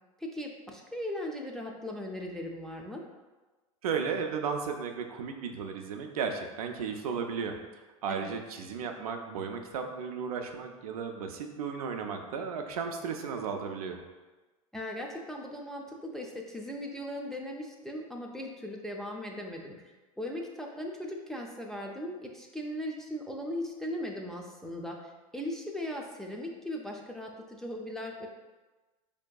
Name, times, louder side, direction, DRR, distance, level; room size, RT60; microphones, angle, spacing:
voice 1, 0.2-3.0 8.2-8.3 14.7-19.9 20.2-28.3, left 1 dB, ahead, -1 dB, 0.4 m, -38 dB
voice 2, 3.8-7.6 8.0-14.0, right 6 dB, 85° right, 4 dB, 0.5 m, -34 dB
4.3 x 2.7 x 2.2 m, 1.2 s
hypercardioid pair, 105°, 19 cm